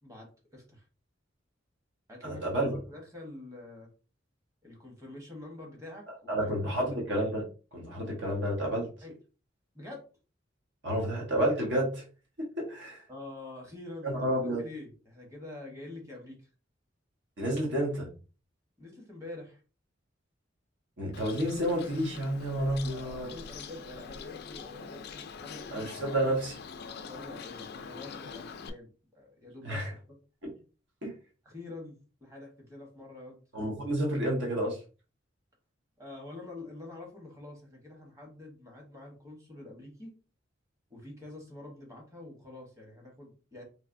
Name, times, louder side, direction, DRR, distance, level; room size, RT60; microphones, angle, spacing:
voice 1, 0.0-0.8 2.1-3.9 4.6-6.5 6.8-6.9 9.0-9.1 9.7-10.0 13.1-14.1 14.6-16.5 18.8-19.6 23.0-26.2 27.0-29.9 31.4-33.4 36.0-40.1 40.9-43.6, left 2 dB, 15° right, 0 dB, 1.1 m, -46 dB
voice 2, 2.2-2.8 6.3-8.9 10.8-12.0 12.4-13.0 14.0-14.6 17.4-18.1 21.0-23.3 25.7-26.5 29.6-29.9 30.4-30.5 31.0-31.1 33.5-34.8, right 1 dB, 70° right, -2 dB, 1.1 m, -30 dB
Bird, 21.1-28.7, left 5 dB, 60° left, 0.4 m, -44 dB
3.2 x 2.8 x 2.5 m, 0.35 s
head